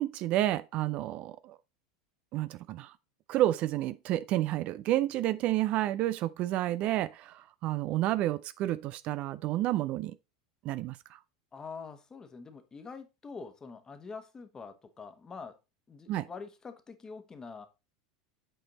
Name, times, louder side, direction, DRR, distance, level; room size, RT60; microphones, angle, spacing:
voice 1, 0.0-1.6 2.3-2.9 3.3-10.2 10.6-11.2 16.1-16.3, right 14 dB, 45° right, 0.4 m, -30 dB
voice 2, 11.5-15.6 15.9-17.7, left 5 dB, 20° left, 1.2 m, -45 dB
7.9 x 4.3 x 4.0 m
hypercardioid pair, 85°, 3 cm